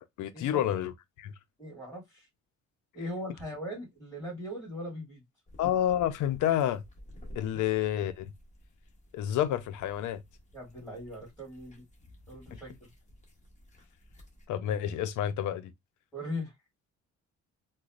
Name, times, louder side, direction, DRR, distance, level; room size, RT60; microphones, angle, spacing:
voice 1, 0.2-0.9 1.2-1.3 5.6-6.8 7.4-8.3 9.1-10.2 14.5-15.7, left 11 dB, 80° left, 0.6 m, -29 dB
voice 2, 1.6-2.3 2.9-5.2 10.5-11.8 12.3-12.9 16.1-16.5, equal, 5° left, 2.5 m, -39 dB
sound 1, 5.5-14.5, equal, 25° left, 1.4 m, -53 dB
3.9 x 2.2 x 2.4 m
cardioid pair, 90°, 30 cm